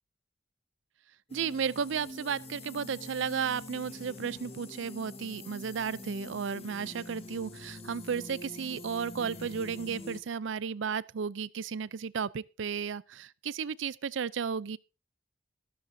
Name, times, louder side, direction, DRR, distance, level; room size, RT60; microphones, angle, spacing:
sound 1, 1.3-10.2, left 2 dB, 30° left, 1.5 m, -45 dB
voice 1, 1.3-14.8, right 6 dB, 75° right, 0.5 m, -34 dB
13.5 x 12.5 x 2.7 m
head